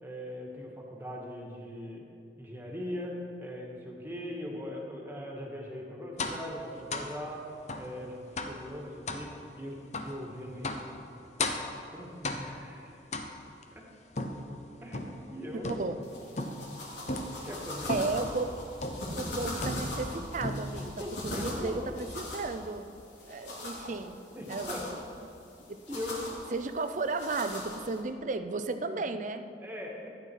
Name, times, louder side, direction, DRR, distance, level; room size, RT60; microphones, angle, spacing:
voice 1, 0.0-2.0 2.4-3.1 3.4-7.4 7.8-8.2 8.5-9.3 9.6-10.8 11.9-12.9 13.7-13.8 14.8-15.7 17.3-18.2 21.0-21.9 23.9-24.0 24.3-24.8 25.9-26.2 28.9-29.0 29.6-30.1, equal, 10° right, -1 dB, 1.7 m, -40 dB
sound 1, 6.2-6.5 6.9-7.2 7.7-7.9 8.4-8.6 9.1-9.3 9.9-10.2 10.6-10.9 11.4-11.8 12.2-12.7 13.1-13.6 14.2-15.2 15.6-16.0 16.4-16.7 17.1-17.4 17.9-18.2 18.8-19.1 19.6-20.1 20.4-20.9, left 2 dB, 40° left, 0.8 m, -35 dB
sound 2, 16.0-28.0, left 1 dB, 85° left, 3.0 m, -40 dB
voice 2, 17.9-18.6 19.2-22.9 23.2-24.2 24.5-24.8 25.7-25.8 26.5-29.4, right 3 dB, 45° right, 9 dB, 0.6 m, -34 dB
13.5 x 9.5 x 4.7 m, 2.5 s
head